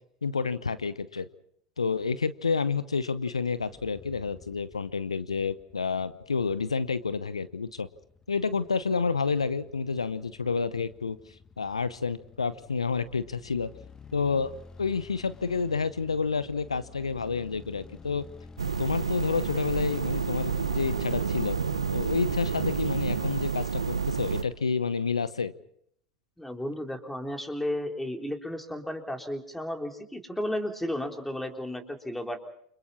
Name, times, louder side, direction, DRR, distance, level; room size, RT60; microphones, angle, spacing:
voice 1, 0.2-1.3 1.8-7.9 8.3-11.2 11.6-13.7 14.1-14.5 14.8-18.2 18.8-21.6 21.9-25.5, left 5 dB, 85° left, 15 dB, 0.8 m, -29 dB
sound 1, 3.6-23.3, left 4 dB, 20° left, 1.2 m, -48 dB
sound 2, 18.6-24.4, right 6 dB, 80° right, 1.1 m, -29 dB
voice 2, 26.4-32.4, left 1 dB, 5° left, 4 dB, 3.6 m, -33 dB
29.5 x 26.0 x 4.2 m, 0.68 s
figure-of-eight pair, 80°, 3 cm